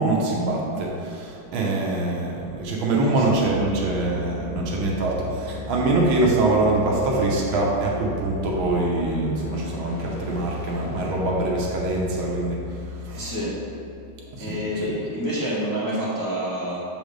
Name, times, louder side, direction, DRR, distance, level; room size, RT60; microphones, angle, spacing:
voice 1, 0.0-12.6 12.9-13.3 14.3-14.9, right 2 dB, 75° right, -2 dB, 1.6 m, -24 dB
sound 1, 3.0-14.8, left 4 dB, 80° left, 0.8 m, -37 dB
voice 2, 3.0-3.6 13.1-13.5 14.4-16.8, equal, 10° left, -10 dB, 1.1 m, -28 dB
7.2 x 5.1 x 3.2 m, 2.7 s
omnidirectional pair, 2.3 m